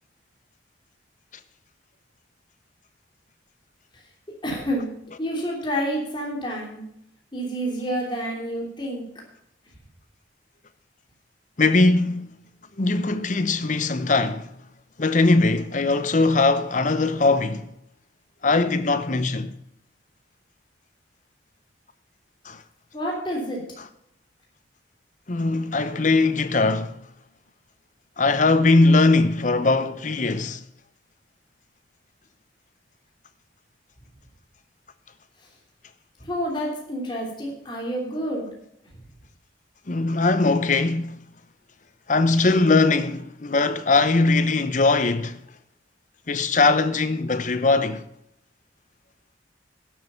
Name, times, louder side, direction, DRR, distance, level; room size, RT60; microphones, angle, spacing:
voice 1, 4.4-4.9 5.2-6.8 7.3-9.0 22.9-23.6 36.2-38.5, equal, 25° left, 3.1 m, -28 dB
voice 2, 11.6-12.3 12.8-14.5 15.0-17.7 18.4-19.5 22.4-22.6 25.3-27.0 28.2-30.6 39.9-41.2 42.1-45.4 46.3-48.1, left 3 dB, 45° left, 0.8 m, -20 dB
12.0 x 7.9 x 5.6 m
head